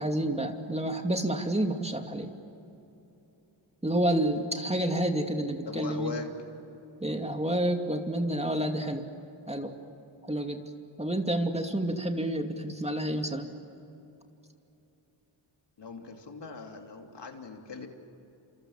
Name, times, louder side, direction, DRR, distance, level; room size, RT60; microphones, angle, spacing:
voice 1, 0.0-2.3 3.8-6.1 7.0-9.1 9.5-9.7 10.3-10.6 11.0-13.5, right 1 dB, 15° right, 4 dB, 2.5 m, -29 dB
voice 2, 5.6-6.3 15.8-17.9, left 5 dB, 60° left, 3 dB, 3.2 m, -39 dB
27.5 x 27.0 x 7.4 m, 2.9 s
cardioid pair, 70°, 47 cm